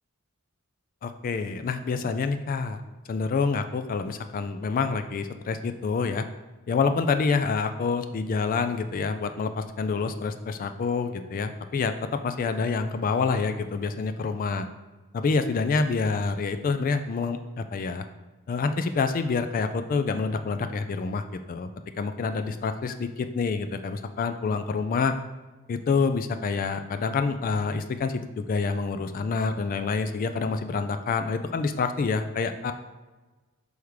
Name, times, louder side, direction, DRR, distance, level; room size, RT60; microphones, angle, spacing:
voice 1, 1.0-2.8 3.1-6.2 6.7-14.7 15.1-18.1 18.5-21.7 22.0-25.1 25.7-32.7, left 4 dB, 40° left, 9 dB, 0.3 m, -27 dB
6.3 x 3.5 x 4.7 m, 1.2 s
head